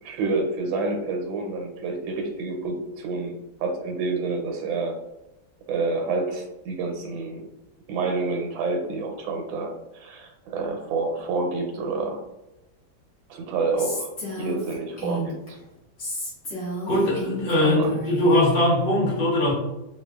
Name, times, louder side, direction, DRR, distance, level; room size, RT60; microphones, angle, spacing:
voice 1, 0.0-4.9 5.7-7.4 7.9-12.2 13.3-14.1 14.4-15.6 17.6-17.9, right 3 dB, 85° right, 2 dB, 1.3 m, -28 dB
Female speech woman speaking, 13.8-15.5 16.0-18.5, equal, 45° left, 1.4 m, -32 dB
voice 2, 16.9-19.5, left 1 dB, 65° left, -5 dB, 1.8 m, -21 dB
3.8 x 2.2 x 2.3 m, 0.97 s
omnidirectional pair, 2.1 m